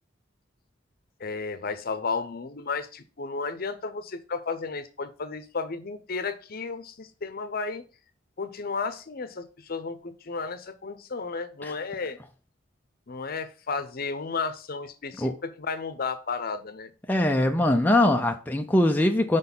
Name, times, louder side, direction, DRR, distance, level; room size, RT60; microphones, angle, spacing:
voice 1, 1.2-7.8 8.4-12.2 13.1-16.9, left 4 dB, 50° left, 0.7 m, -33 dB
voice 2, 17.1-19.4, left 1 dB, 10° left, 0.4 m, -22 dB
5.3 x 4.1 x 5.4 m
head